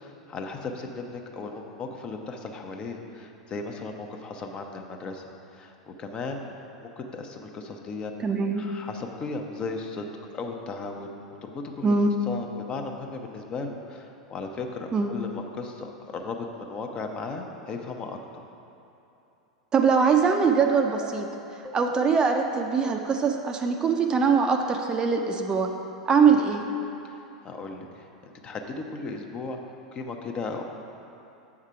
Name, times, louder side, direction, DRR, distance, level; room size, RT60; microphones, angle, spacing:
voice 1, 0.0-6.4 6.8-8.2 8.6-10.0 10.3-11.1 11.4-11.9 12.3-18.2 26.2-26.4 27.0-29.6 29.9-30.6, left 3 dB, 30° left, 3 dB, 0.7 m, -36 dB
voice 2, 8.2-8.6 11.8-12.1 14.9-15.1 19.7-21.3 21.7-25.7 26.1-26.6, right 5 dB, 25° right, 4 dB, 0.5 m, -22 dB
sound 1, 19.8-22.6, equal, 10° left, 1.0 m, -45 dB
7.3 x 4.8 x 5.6 m, 2.9 s
figure-of-eight pair, 85°, 3 cm